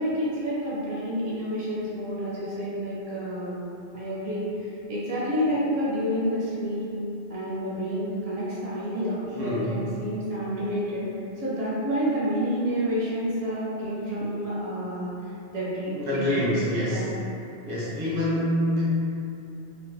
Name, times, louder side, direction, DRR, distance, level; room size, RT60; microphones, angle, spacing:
voice 1, 0.0-3.6 3.9-6.9 7.3-11.1 11.4-16.4 16.9-17.1, equal, 70° right, -7 dB, 0.8 m, -29 dB
voice 2, 9.3-9.8 15.9-17.1 17.7-18.9, equal, 30° right, -9 dB, 0.5 m, -26 dB
2.6 x 2.1 x 2.2 m, 2.7 s
omnidirectional pair, 1.1 m